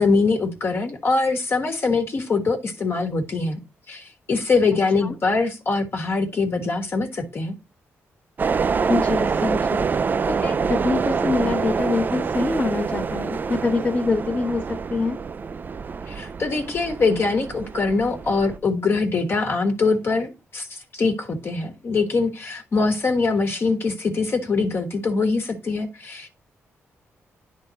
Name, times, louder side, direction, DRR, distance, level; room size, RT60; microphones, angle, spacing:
voice 1, 0.0-3.6 3.9-7.6 16.1-26.3, left 4 dB, 50° left, 1.4 m, -23 dB
sound 1, 8.4-18.6, right 5 dB, 35° right, 0.3 m, -26 dB
voice 2, 8.9-9.8 10.3-14.6 14.9-15.2, left 3 dB, 30° left, 1.1 m, -25 dB
10.0 x 3.7 x 4.0 m
cardioid pair, 85°, 5 cm